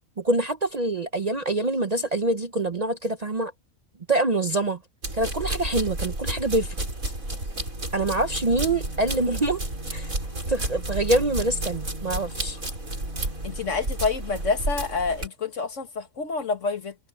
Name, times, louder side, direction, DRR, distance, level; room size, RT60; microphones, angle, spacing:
voice 1, 0.2-3.5 4.1-4.8 5.1-6.7 7.9-9.6 9.9-10.1 10.5-12.6, right 2 dB, 35° right, 0.7 m, -25 dB
sound 1, 5.0-15.3, right 1 dB, 80° right, 6.8 m, -31 dB
sound 2, 7.7-13.7, right 1 dB, 90° left, 7.5 m, -44 dB
voice 2, 13.4-17.0, left 4 dB, 60° left, 2.0 m, -28 dB
omnidirectional pair, 1.4 m